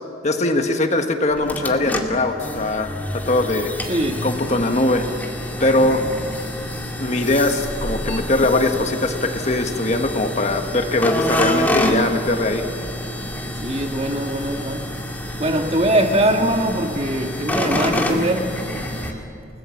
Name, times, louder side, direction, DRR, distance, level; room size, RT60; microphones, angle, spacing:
voice 1, 0.2-3.7 4.2-5.0 5.6-6.1 7.0-12.6, left 2 dB, 35° left, 1.5 m, -21 dB
sound 1, 1.3-19.1, left 1 dB, 10° left, 2.2 m, -27 dB
voice 2, 3.9-4.3 13.6-14.9 15.4-18.5 18.9-19.2, right 1 dB, 35° right, 1.9 m, -22 dB
30.0 x 19.0 x 7.3 m
head